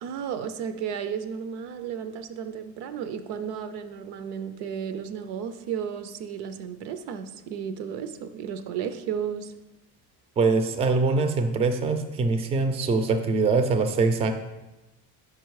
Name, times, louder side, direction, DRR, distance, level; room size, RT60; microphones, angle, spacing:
voice 1, 0.0-9.5, right 8 dB, 85° right, 10 dB, 0.6 m, -33 dB
voice 2, 10.4-14.3, right 4 dB, 15° right, 8 dB, 0.3 m, -23 dB
5.0 x 4.6 x 4.6 m, 1.0 s
cardioid pair, 130°, 39 cm